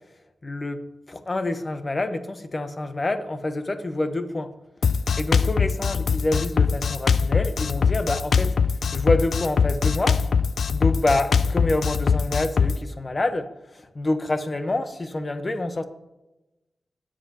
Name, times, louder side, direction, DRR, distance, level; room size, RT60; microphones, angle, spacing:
voice 1, 0.4-0.8 1.1-4.5 5.2-8.6 8.9-10.2 10.7-15.8, left 2 dB, 35° left, 9 dB, 1.0 m, -27 dB
Drum kit, 4.8-12.8, left 5 dB, 80° left, 0.4 m, -22 dB
20.0 x 7.5 x 2.9 m, 0.98 s
wide cardioid pair, 90°, 0 cm